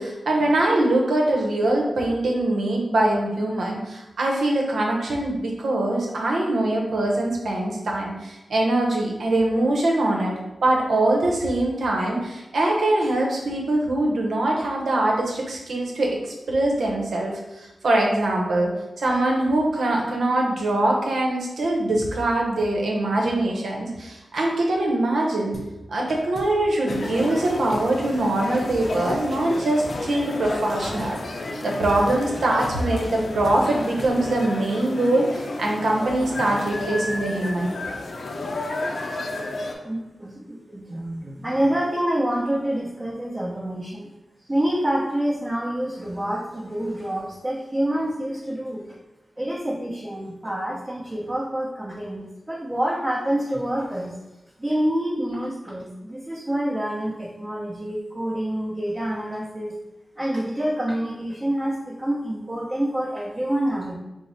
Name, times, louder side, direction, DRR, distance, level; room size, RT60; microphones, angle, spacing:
voice 1, 0.0-10.3 10.6-18.7 19.0-25.6 25.9-37.7, right 1 dB, 90° right, -1 dB, 0.7 m, -23 dB
sound 1, 25.5-25.8 26.1-26.6 26.9-27.2 27.4-29.6 29.9-30.2 30.4-31.2 32.1-34.2, left 1 dB, 35° left, 0.7 m, -41 dB
sound 2, 26.9-39.7, left 2 dB, 70° left, 0.5 m, -32 dB
voice 2, 39.8-44.1 44.5-48.8 49.4-54.2 54.6-59.7 60.2-64.0, right 1 dB, 25° right, -7 dB, 0.8 m, -27 dB
4.6 x 2.0 x 4.0 m, 0.99 s
wide cardioid pair, 85°, 0 cm